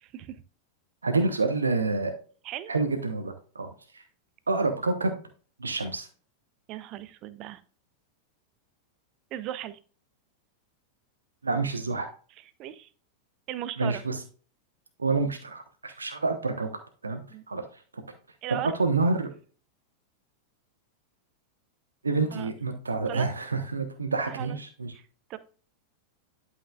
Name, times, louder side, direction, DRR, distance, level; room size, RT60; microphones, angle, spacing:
voice 1, 0.0-0.4 2.4-2.7 6.7-7.6 9.3-9.8 12.6-12.9 13.5-14.0 15.9-16.0 17.3-17.4 18.4-18.7 22.3-22.5 23.1-23.3 24.3-24.6 24.9-25.0 25.3-25.4, right 12 dB, 40° right, 14 dB, 0.7 m, -37 dB
voice 2, 1.0-2.1 2.7-3.7 3.9-4.0 4.5-5.2 5.6-6.1 11.4-12.1 13.8-14.2 15.0-16.7 17.0-17.2 17.5-17.8 18.8-19.3 22.0-24.9, right 3 dB, 75° right, 6 dB, 1.0 m, -28 dB
11.0 x 5.7 x 2.3 m, 0.40 s
figure-of-eight pair, 90°, 0 cm